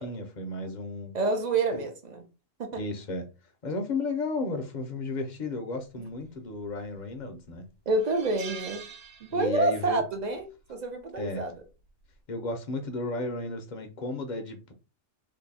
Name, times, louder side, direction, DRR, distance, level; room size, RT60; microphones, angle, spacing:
voice 1, 0.0-1.2 1.7-1.8 2.7-3.2 3.6-7.7 9.3-10.0 11.2-11.4 12.3-14.7, left 2 dB, 55° left, 0.5 m, -33 dB
voice 2, 1.1-2.2 2.6-2.8 7.9-8.8 9.2-11.6, right 2 dB, 50° right, 0.5 m, -28 dB
sound 1, 6.6-7.1 7.5-7.6 8.0-9.8 10.1-10.3 11.6-11.9, right 6 dB, 80° right, 1.0 m, -44 dB
2.7 x 2.6 x 4.0 m
omnidirectional pair, 1.4 m